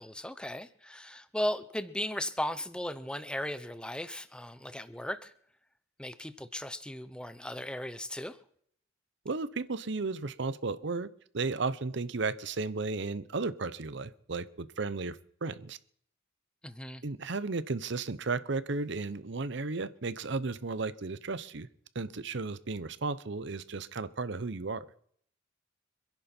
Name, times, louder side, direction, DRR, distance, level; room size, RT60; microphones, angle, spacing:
voice 1, 0.0-5.3 6.0-8.4 16.6-17.0, left 1 dB, 5° left, 12 dB, 0.7 m, -36 dB
voice 2, 9.2-11.1 11.3-15.8 17.0-21.7 21.9-24.9, right 3 dB, 65° right, 15 dB, 0.8 m, -34 dB
26.5 x 11.0 x 4.5 m, 0.64 s
head